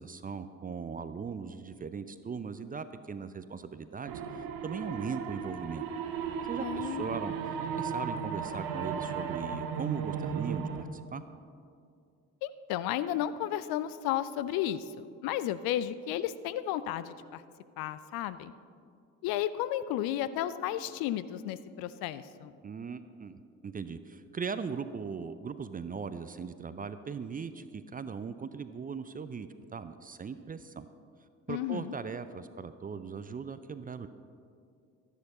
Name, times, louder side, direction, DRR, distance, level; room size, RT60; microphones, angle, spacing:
voice 1, 0.0-5.8 6.5-11.2 22.6-30.9 31.5-34.1, right 5 dB, 20° right, 12 dB, 0.5 m, -39 dB
sound 1, 4.1-10.8, right 7 dB, 55° right, 0.9 m, -35 dB
voice 2, 6.6-7.1 12.4-14.8 15.2-17.4 17.8-18.5 19.2-22.5 31.5-31.9, left 12 dB, 55° left, 14 dB, 0.5 m, -33 dB
12.5 x 10.5 x 4.2 m, 2.4 s
figure-of-eight pair, 45°, 42 cm